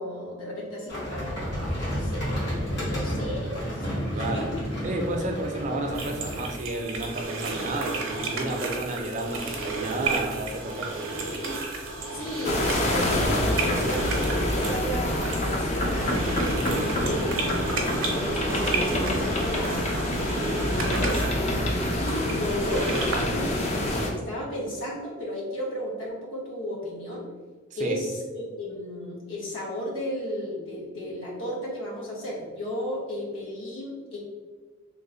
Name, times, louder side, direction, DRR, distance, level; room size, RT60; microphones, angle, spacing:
voice 1, 0.0-4.6 5.2-5.3 12.1-16.3 17.0-21.6 21.9-27.3 27.8-34.2, left 1 dB, 75° left, -3 dB, 1.1 m, -34 dB
sound 1, 0.9-6.5, equal, 55° left, 1.4 m, -31 dB
voice 2, 4.1-4.5 4.8-11.0 16.6-17.0 27.8-28.0, right 2 dB, 35° right, 3 dB, 0.4 m, -31 dB
sound 2, 5.9-23.2, right 3 dB, 75° right, 0.7 m, -32 dB
sound 3, 12.4-24.1, left 1 dB, 35° left, 0.4 m, -26 dB
3.1 x 2.1 x 3.8 m, 1.4 s
head